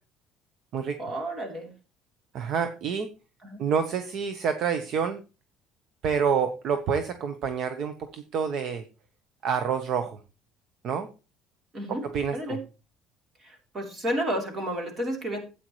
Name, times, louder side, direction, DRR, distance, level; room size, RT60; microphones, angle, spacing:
voice 1, 1.0-1.7 3.4-3.6 11.7-12.0 12.3-12.7 13.4-15.4, equal, 25° right, 2 dB, 3.4 m, -31 dB
voice 2, 2.3-3.1 3.6-5.2 6.0-8.8 9.4-10.2 10.8-11.1 11.9-12.6, right 6 dB, 50° right, 8 dB, 1.0 m, -28 dB
13.0 x 8.9 x 3.2 m, 0.32 s
cardioid pair, 155°, 0 cm